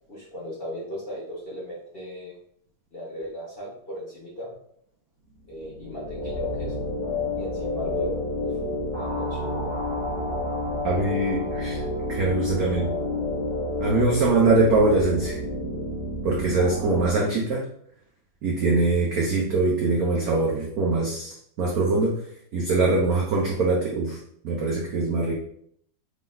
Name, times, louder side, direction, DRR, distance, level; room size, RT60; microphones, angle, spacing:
voice 1, 0.1-2.3 2.9-4.5 5.5-6.8 7.4-8.1 8.4-8.5 9.0-9.7, equal, 45° left, -8 dB, 0.7 m, -36 dB
sound 1, 5.5-17.1, left 2 dB, 45° right, 2.0 m, -29 dB
voice 2, 10.8-11.8 12.1-12.9 13.8-15.4 16.2-17.7 18.4-22.2 22.5-24.2 24.4-25.3, right 3 dB, 75° right, -2 dB, 0.8 m, -23 dB
3.8 x 3.8 x 2.6 m, 0.66 s
omnidirectional pair, 2.3 m